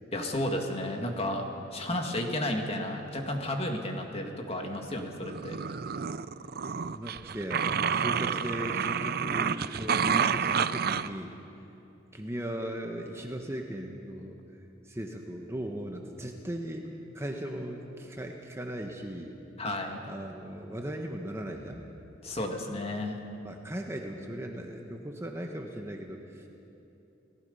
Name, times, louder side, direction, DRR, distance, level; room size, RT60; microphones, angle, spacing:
voice 1, 0.1-1.4 1.7-5.6 19.6-20.0 22.2-23.2, left 1 dB, 30° left, 2 dB, 2.2 m, -32 dB
sound 1, 5.2-11.1, right 6 dB, 55° right, 0.5 m, -29 dB
voice 2, 6.7-11.3 12.1-14.4 14.8-19.3 20.1-21.8 23.4-26.5, equal, 15° right, 2 dB, 1.2 m, -38 dB
30.0 x 18.0 x 5.6 m, 2.9 s
head